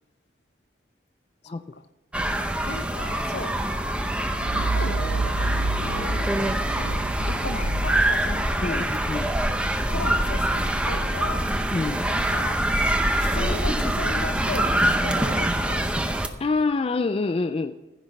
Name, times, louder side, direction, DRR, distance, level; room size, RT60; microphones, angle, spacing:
sound 1, 2.1-16.3, right 1 dB, 5° right, 0.6 m, -25 dB
voice 1, 2.7-3.5 4.5-8.9 9.9-11.4 12.1-12.6 13.2-16.0, left 3 dB, 60° left, 11 dB, 0.7 m, -36 dB
sound 2, 4.0-12.3 12.7-15.3, right 2 dB, 65° right, 0.9 m, -32 dB
voice 2, 8.6-9.2 11.7-12.1 16.4-17.7, left 3 dB, 30° left, 10 dB, 0.3 m, -26 dB
15.0 x 6.1 x 7.2 m, 1.1 s
head